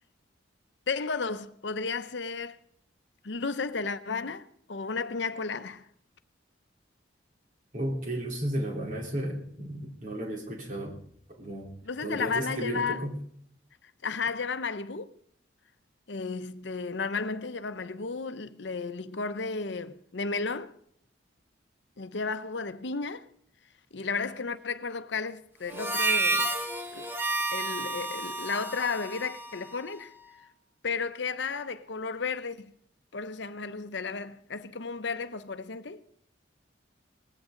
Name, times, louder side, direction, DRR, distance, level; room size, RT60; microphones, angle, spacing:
voice 1, 0.9-2.6 3.2-5.9 11.9-13.0 14.0-15.1 16.1-20.7 22.0-23.3 23.9-26.5 26.9-27.1 27.5-30.1 30.8-32.7 33.1-36.1, left 4 dB, 70° left, 0.8 m, -33 dB
voice 2, 7.7-11.0 11.3-11.7 12.0-13.2, right 1 dB, 40° right, 3.6 m, -33 dB
Harmonica, 25.7-30.3, right 2 dB, 10° right, 1.2 m, -31 dB
19.0 x 15.5 x 3.9 m
head